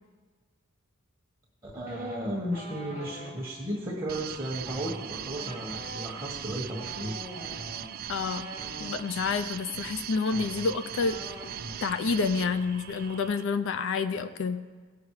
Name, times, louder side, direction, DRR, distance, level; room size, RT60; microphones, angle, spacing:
voice 1, 1.6-7.1, equal, 15° right, -3 dB, 1.5 m, -34 dB
sound 1, 1.9-3.3 4.6-8.9 9.9-10.0 10.2-11.9 12.2-12.4 12.7-13.2, equal, 30° left, 2.2 m, -43 dB
sound 2, 4.1-13.4, right 10 dB, 45° right, 0.4 m, -40 dB
voice 2, 8.1-8.5 8.8-11.2 11.8-14.6, left 4 dB, 60° left, 11 dB, 0.5 m, -28 dB
17.5 x 7.1 x 4.8 m, 1.4 s
head